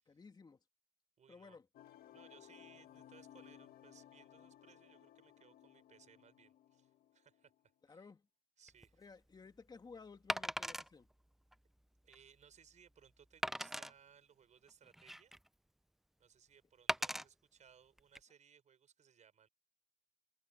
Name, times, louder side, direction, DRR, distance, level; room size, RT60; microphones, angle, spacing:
voice 1, 0.1-0.6 1.3-1.7 7.8-8.2 9.0-11.1, left 4 dB, 25° left, 2.5 m, -56 dB
voice 2, 1.2-1.6 2.1-7.5 7.9-8.1 8.6-9.0 12.0-15.3 16.2-19.5, right 7 dB, 45° right, 6.2 m, -65 dB
sound 1, 1.7-7.6, left 11 dB, 65° left, 2.2 m, -60 dB
Wood, 8.7-8.9 10.3-10.9 11.5-11.6 12.1-12.2 13.4-13.9 14.7-15.5 16.9-17.2 18.0-18.2, equal, ahead, 0.4 m, -38 dB
cardioid pair, 110°, 17 cm